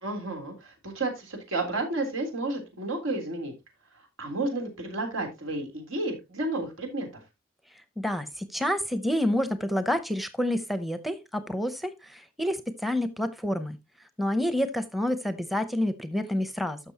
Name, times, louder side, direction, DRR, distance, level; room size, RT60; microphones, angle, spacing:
voice 1, 0.0-3.5 3.9-7.1, right 2 dB, 90° right, 3.4 m, -32 dB
voice 2, 8.0-13.8 14.2-16.8, left 1 dB, ahead, 0.6 m, -28 dB
13.0 x 6.1 x 2.8 m
head